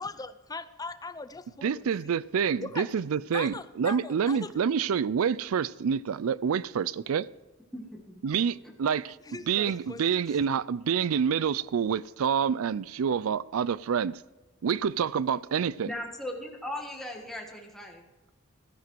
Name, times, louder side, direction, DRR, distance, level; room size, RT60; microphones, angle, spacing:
voice 1, 0.0-2.1 2.6-2.9 3.3-4.5 9.2-10.0, left 3 dB, 20° left, 0.5 m, -39 dB
voice 2, 1.6-7.2 8.2-9.2 9.5-14.2 14.6-15.9, right 7 dB, 75° right, 0.4 m, -27 dB
voice 3, 15.8-18.0, left 1 dB, ahead, 1.4 m, -37 dB
13.5 x 10.0 x 4.6 m
head